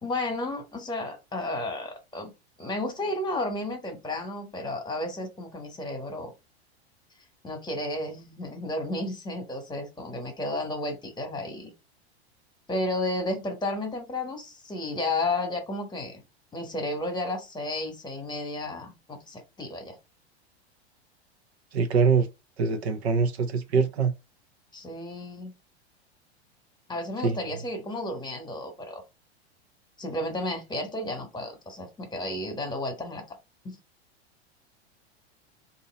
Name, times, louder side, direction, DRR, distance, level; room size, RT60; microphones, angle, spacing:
voice 1, 0.0-2.3 2.6-6.3 7.4-11.7 12.7-16.2 16.5-20.0 24.7-25.5 26.9-29.0 30.0-33.2 33.6-33.8, left 1 dB, 15° left, 1.3 m, -32 dB
voice 2, 21.7-22.3 22.6-24.1 27.2-27.4, right 5 dB, 75° right, 0.9 m, -23 dB
2.8 x 2.7 x 4.1 m
hypercardioid pair, 100°, 32 cm